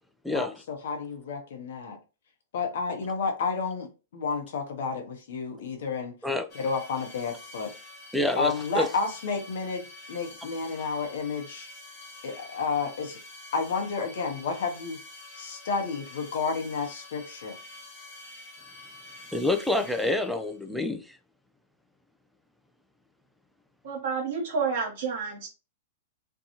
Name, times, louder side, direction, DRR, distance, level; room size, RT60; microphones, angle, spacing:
voice 1, 0.3-2.0 2.5-6.2 6.5-7.7 8.4-11.7 12.2-13.2 13.5-15.0 15.4-17.6, left 4 dB, 70° left, 0.8 m, -31 dB
sound 1, 6.5-20.6, left 2 dB, 40° left, 1.2 m, -47 dB
voice 2, 8.1-8.9 19.3-21.0, left 2 dB, ahead, 0.4 m, -27 dB
voice 3, 23.8-25.5, right 5 dB, 65° right, 0.9 m, -29 dB
2.6 x 2.3 x 2.8 m
hypercardioid pair, 110°, 0 cm